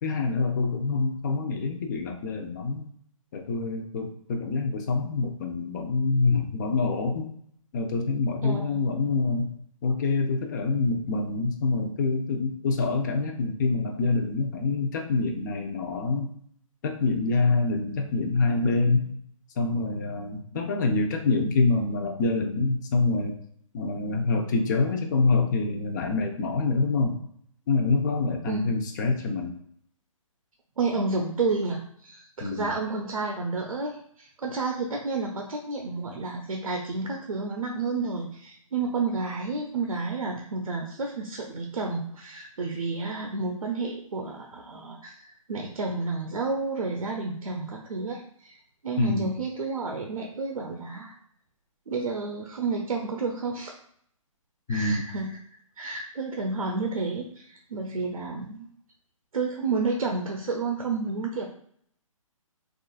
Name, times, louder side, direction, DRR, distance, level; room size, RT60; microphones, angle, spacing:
voice 1, 0.0-2.9 3.3-7.3 7.7-9.5 9.8-16.3 16.8-19.1 19.6-23.4 23.7-27.2 27.7-29.6 32.4-32.7 49.0-49.3 54.7-55.1, left 3 dB, 35° left, 4 dB, 0.5 m, -26 dB
voice 2, 8.4-8.7 28.5-28.8 30.8-48.6 48.8-51.2 51.9-53.7 54.7-55.4 55.8-58.7 59.3-61.5, right 3 dB, 85° right, 1 dB, 0.6 m, -31 dB
3.7 x 2.4 x 2.3 m, 0.65 s
hypercardioid pair, 145°, 18 cm